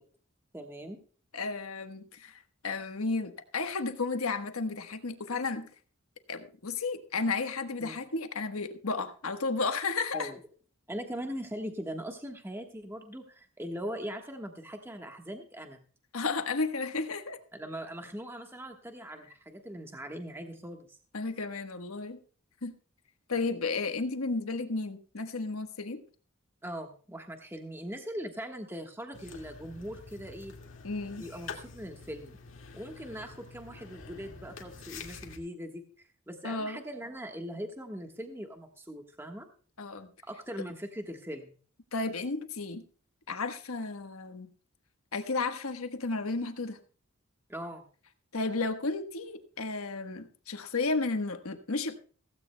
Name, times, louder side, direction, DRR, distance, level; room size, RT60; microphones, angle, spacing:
voice 1, 0.5-1.0 7.8-8.0 10.1-10.4 10.9-15.8 17.6-21.0 26.6-30.6 31.2-32.4 32.7-39.5 40.3-41.6 47.5-47.8, equal, 10° right, 3 dB, 1.3 m, -40 dB
voice 2, 1.3-5.7 6.3-10.3 16.1-17.4 21.1-22.2 22.6-22.7 23.3-26.0 30.8-31.2 36.4-36.8 39.8-40.1 41.9-42.8 43.3-44.5 45.1-46.8 48.3-52.0, left 3 dB, 80° left, 7 dB, 1.3 m, -33 dB
sound 1, 29.1-35.4, left 4 dB, 65° left, 2.0 m, -47 dB
16.0 x 16.0 x 2.2 m, 0.42 s
head